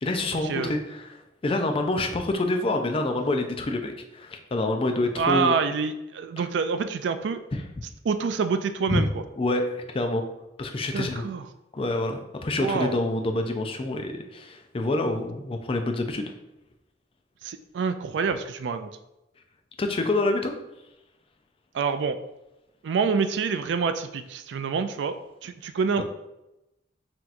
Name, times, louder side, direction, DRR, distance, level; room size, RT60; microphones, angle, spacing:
voice 1, 0.0-5.5 8.9-9.0 9.4-10.2 10.6-11.2 11.7-16.3 19.8-20.5 26.0-26.1, left 2 dB, 30° left, 5 dB, 0.4 m, -27 dB
voice 2, 5.2-7.4 8.0-9.2 10.9-11.5 12.6-13.0 17.4-18.9 21.7-22.2 22.8-25.2 25.4-26.0, right 5 dB, 70° right, 10 dB, 0.3 m, -27 dB
5.8 x 2.9 x 2.5 m, 0.92 s
head